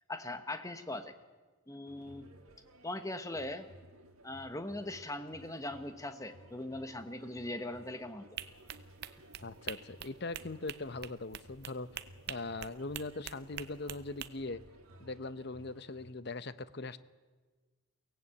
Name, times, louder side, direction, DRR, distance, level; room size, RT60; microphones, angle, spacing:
voice 1, 0.1-1.1 1.7-2.3 2.8-3.7 4.2-8.3, left 1 dB, 15° left, 8 dB, 1.2 m, -40 dB
sound 1, 1.9-16.1, right 1 dB, 85° right, 2.4 m, -57 dB
sound 2, 8.4-14.3, right 10 dB, 50° right, 0.7 m, -45 dB
voice 2, 9.4-11.9 12.3-14.6 15.0-17.0, left 3 dB, 50° left, 14 dB, 0.8 m, -41 dB
23.5 x 17.5 x 8.5 m, 1.4 s
head